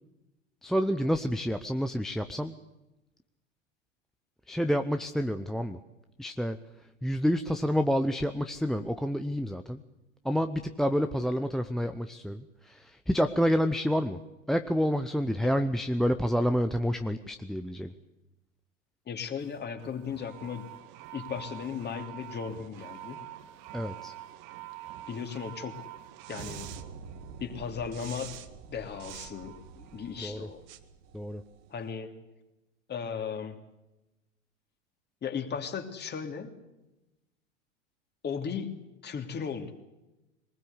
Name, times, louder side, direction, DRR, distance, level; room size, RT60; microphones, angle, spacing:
voice 1, 0.6-2.5 4.5-5.8 6.2-6.6 7.0-9.8 10.2-14.2 14.5-17.9 23.7-24.1 30.2-30.5 31.1-31.4, equal, ahead, 8 dB, 0.9 m, -28 dB
voice 2, 19.1-20.7 21.1-23.2 25.1-25.9 26.3-26.7 27.4-28.4 28.7-30.6 31.7-32.1 32.9-33.6 35.2-36.6 38.2-38.7 39.0-39.7, left 7 dB, 25° left, 6 dB, 3.1 m, -36 dB
sound 1, 19.4-31.8, right 11 dB, 50° right, 1.9 m, -45 dB
23.0 x 20.0 x 8.3 m, 0.98 s
figure-of-eight pair, 90°, 38 cm